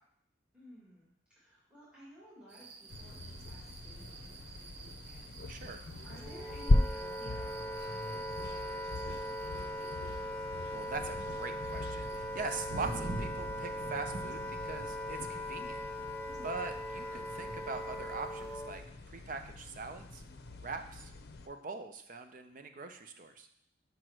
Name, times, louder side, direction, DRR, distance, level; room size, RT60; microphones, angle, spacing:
voice 1, 0.5-9.9 16.2-16.5, equal, 5° right, -9 dB, 2.0 m, -56 dB
sound 1, 2.5-18.6, right 2 dB, 70° right, 0.9 m, -48 dB
sound 2, 2.9-21.5, left 2 dB, 60° left, 0.6 m, -39 dB
voice 2, 5.5-5.8 10.7-15.8 16.4-20.2 20.6-21.1 21.5-23.5, right 4 dB, 50° right, 7 dB, 0.6 m, -42 dB
Wind instrument woodwind instrument, 6.2-18.9, equal, 10° left, 0.4 m, -40 dB
5.2 x 4.7 x 6.0 m, 0.71 s
head